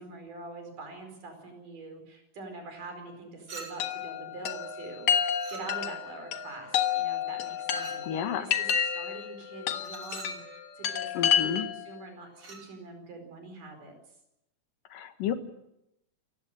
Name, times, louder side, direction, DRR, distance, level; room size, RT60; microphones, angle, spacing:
voice 1, 0.0-5.1 5.5-11.1 11.4-14.0, right 3 dB, 75° right, 5 dB, 6.3 m, -44 dB
Chink clink, 3.5-4.1 5.4-6.1 7.8-8.1 9.8-10.5 12.4-12.7, right 4 dB, 45° right, 3.9 m, -45 dB
Chime, 3.8-11.9, left 8 dB, 65° left, 2.7 m, -30 dB
voice 2, 8.0-8.5 11.1-11.7 14.9-15.3, left 9 dB, 85° left, 8 dB, 3.2 m, -31 dB
28.0 x 16.0 x 7.8 m, 0.85 s
omnidirectional pair, 3.7 m